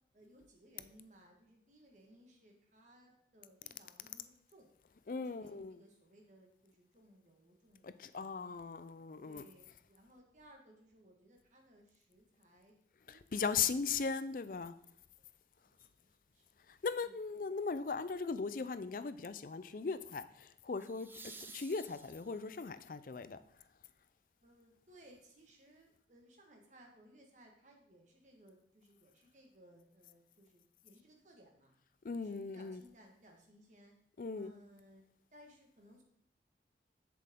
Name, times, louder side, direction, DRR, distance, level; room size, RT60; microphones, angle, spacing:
voice 1, 0.1-4.7 5.2-8.3 9.3-12.8 13.1-13.5 15.6-16.4 17.0-17.1 24.4-31.7 32.2-33.9 34.3-35.1 35.3-36.0, equal, 45° right, 1.5 m, -62 dB
voice 2, 5.1-5.8 7.8-9.5 13.1-14.7 16.7-23.4 32.0-32.8 34.2-34.5, left 5 dB, 50° left, 0.4 m, -38 dB
sound 1, 17.7-18.0 20.7-22.6 25.5-25.6, right 3 dB, 10° right, 0.4 m, -54 dB
7.7 x 7.2 x 3.7 m
head